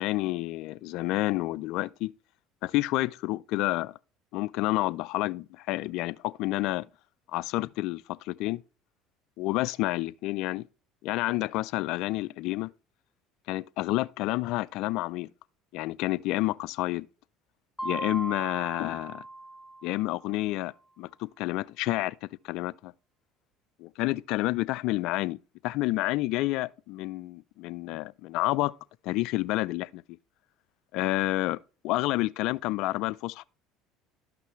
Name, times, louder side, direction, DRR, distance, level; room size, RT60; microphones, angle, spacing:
voice 1, 0.0-2.1 2.6-4.0 4.3-6.9 7.3-8.6 9.4-10.7 11.0-12.7 13.5-15.3 15.7-17.1 17.8-19.2 19.8-22.9 23.8-25.4 25.6-28.7 29.0-30.0 30.9-33.4, left 18 dB, 70° left, 0.4 m, -29 dB
Mallet percussion, 17.8-20.4, right 2 dB, 15° left, 0.5 m, -38 dB
12.5 x 5.8 x 3.1 m
supercardioid pair, 95°, 0 cm